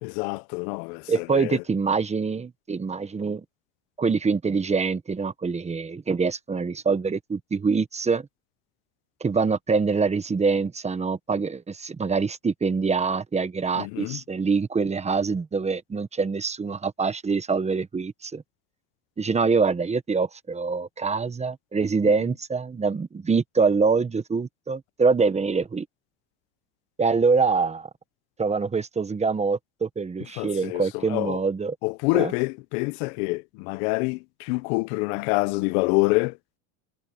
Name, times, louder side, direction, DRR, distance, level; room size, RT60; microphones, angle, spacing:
voice 1, 0.0-1.6 13.8-14.2 30.4-30.8 31.1-31.4 31.8-36.3, left 26 dB, 85° left, 0.7 m, -26 dB
voice 2, 1.1-3.4 4.0-8.3 9.2-18.4 19.2-25.9 27.0-27.9 28.4-31.8 32.1-32.3, right 4 dB, 15° right, 1.1 m, -25 dB
cardioid pair, 140°, 42 cm